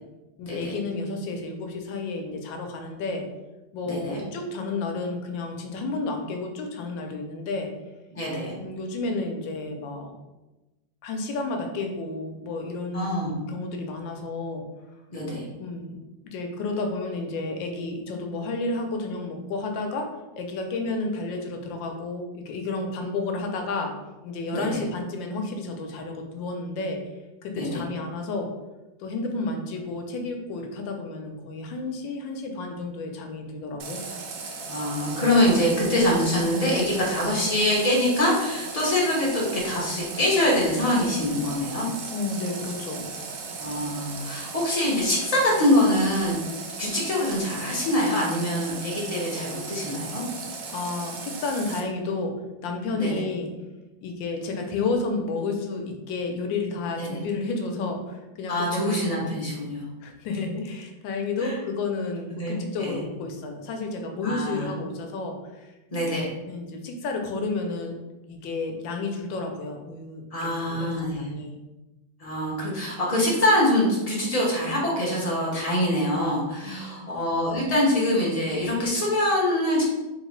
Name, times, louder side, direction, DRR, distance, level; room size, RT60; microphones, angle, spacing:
voice 1, 0.4-3.3 3.7-7.7 8.5-10.1 11.0-14.6 15.6-16.0 16.2-23.9 24.2-27.0 27.4-28.5 29.0-34.0 42.1-43.1 50.7-52.4 52.6-53.5 54.0-59.0 60.0-65.7 66.5-67.9 68.3-71.5 76.6-77.1, left 3 dB, 75° left, 4 dB, 1.3 m, -31 dB
voice 2, 3.8-4.2 8.1-8.5 12.9-13.3 15.1-15.5 24.5-24.8 27.5-27.8 34.7-41.9 43.6-46.3 46.8-50.2 53.0-53.2 57.0-57.2 58.5-59.8 61.4-61.6 62.3-63.0 64.2-64.7 65.9-66.3 70.3-71.3 72.2-79.8, left 1 dB, 30° left, -5 dB, 0.7 m, -24 dB
Water tap faucet, 33.8-51.8, right 4 dB, 70° right, 1.0 m, -37 dB
3.6 x 3.5 x 3.1 m, 1.1 s
omnidirectional pair, 2.1 m